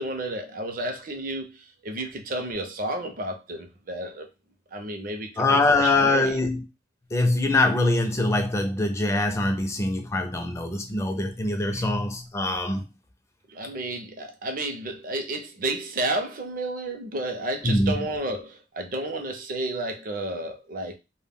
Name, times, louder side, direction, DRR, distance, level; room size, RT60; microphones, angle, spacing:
voice 1, 0.0-4.3 4.7-6.4 11.8-11.9 13.5-20.9, right 2 dB, 50° right, 0.5 m, -31 dB
voice 2, 5.4-6.7 7.1-12.9 17.6-18.1, left 2 dB, 15° left, 0.4 m, -23 dB
2.1 x 2.1 x 3.4 m
head